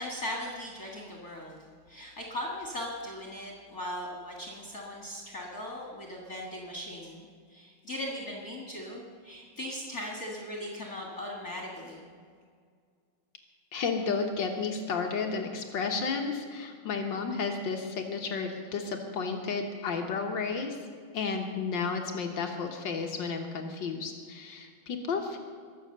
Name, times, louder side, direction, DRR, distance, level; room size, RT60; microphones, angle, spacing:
voice 1, 0.0-1.6 1.9-7.2 7.5-12.1, left 1 dB, 35° left, -2 dB, 1.7 m, -38 dB
voice 2, 13.7-20.8 21.1-25.4, left 5 dB, 75° left, 3 dB, 1.0 m, -32 dB
22.5 x 7.7 x 6.6 m, 2.1 s
omnidirectional pair, 3.7 m